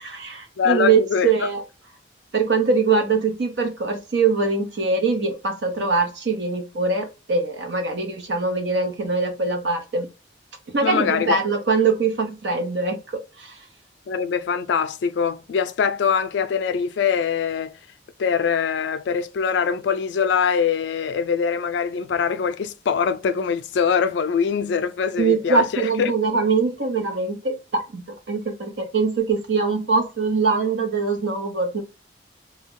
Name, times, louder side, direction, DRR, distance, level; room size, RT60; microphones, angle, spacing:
voice 1, 0.0-1.6 2.3-10.1 10.7-13.0 13.4-13.5 25.2-31.8, right 4 dB, 70° right, 0.7 m, -22 dB
voice 2, 0.6-1.3 10.8-11.4 14.1-17.8 18.2-26.1, left 6 dB, 70° left, 0.3 m, -23 dB
2.3 x 2.1 x 3.5 m
head